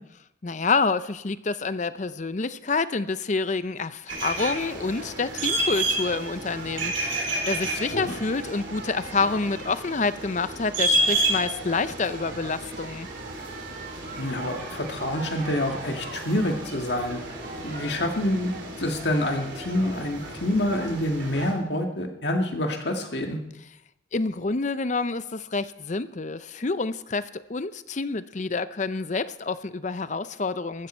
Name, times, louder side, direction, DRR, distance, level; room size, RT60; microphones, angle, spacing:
voice 1, 0.4-13.1 24.1-30.9, left 4 dB, 40° left, 13 dB, 0.6 m, -28 dB
sound 1, 4.1-21.5, right 2 dB, 80° right, 3.1 m, -32 dB
sound 2, 4.3-10.3 10.7-19.9, right 3 dB, 55° right, 2.4 m, -42 dB
voice 2, 14.1-17.2 17.6-23.4, left 1 dB, 65° left, 3 dB, 2.0 m, -27 dB
14.5 x 14.0 x 4.5 m, 0.83 s
head